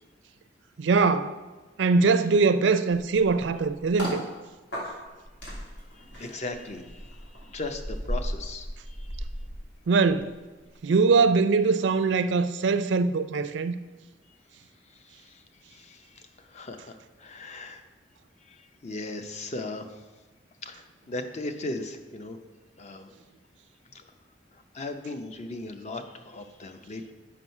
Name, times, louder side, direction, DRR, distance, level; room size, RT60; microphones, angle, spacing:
voice 1, 0.8-1.3 1.8-4.2 9.9-10.3 10.8-13.8, right 4 dB, 75° right, 0.4 m, -22 dB
sound 1, 3.0-4.2 4.7-10.3 10.6-10.9, equal, 85° left, 2.7 m, -36 dB
voice 2, 5.9-7.2 7.5-9.1 15.2-15.4 15.7-17.8 18.5-18.6 18.8-19.9 20.6-22.4 22.8-23.1 23.9-24.0 24.7-27.1, left 2 dB, 40° left, 0.6 m, -37 dB
6.1 x 5.4 x 5.4 m
head